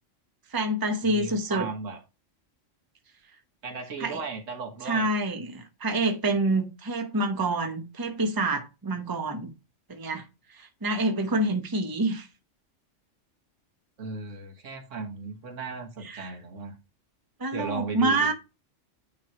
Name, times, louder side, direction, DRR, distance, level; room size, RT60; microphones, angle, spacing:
voice 1, 0.5-1.7 4.0-4.2 4.8-9.5 9.9-12.3 16.0-16.4 17.4-18.3, right 2 dB, 20° right, 0.9 m, -27 dB
voice 2, 1.0-2.0 3.6-5.1 14.0-16.8 17.5-18.3, right 4 dB, 80° right, 1.8 m, -36 dB
9.3 x 3.3 x 4.7 m
omnidirectional pair, 1.3 m